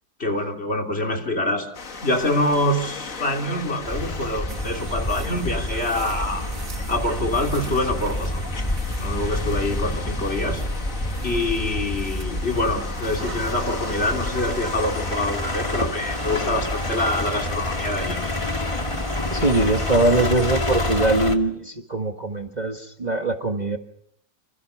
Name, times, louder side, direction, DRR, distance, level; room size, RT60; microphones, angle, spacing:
voice 1, 0.2-1.7 2.0-6.4 6.9-8.5 9.0-10.6 11.2-18.3, left 1 dB, 40° left, 7 dB, 3.6 m, -25 dB
sound 1, 1.7-21.3, left 4 dB, 55° left, 2.1 m, -37 dB
sound 2, 3.8-21.4, left 2 dB, 20° left, 2.1 m, -28 dB
sound 3, 4.5-21.4, right 4 dB, 55° right, 2.2 m, -39 dB
voice 2, 19.3-23.8, right 2 dB, 25° right, 3 dB, 1.7 m, -22 dB
27.0 x 26.5 x 5.9 m, 0.69 s
omnidirectional pair, 1.7 m